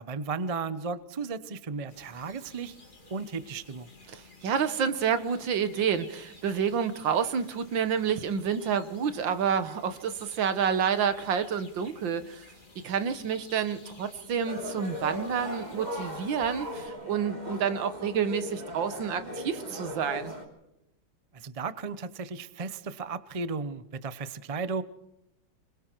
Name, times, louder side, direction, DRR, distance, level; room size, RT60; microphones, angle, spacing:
voice 1, 0.0-2.8 3.1-3.9 21.3-24.8, right 4 dB, 45° right, 14 dB, 0.4 m, -35 dB
sound 1, 1.9-16.9, left 2 dB, 25° left, 2.7 m, -54 dB
voice 2, 4.1-12.5 12.8-20.3, right 7 dB, 70° right, 11 dB, 1.9 m, -29 dB
sound 2, 14.5-20.4, equal, 20° right, 3.0 m, -38 dB
26.5 x 22.0 x 4.6 m, 0.83 s
omnidirectional pair, 2.1 m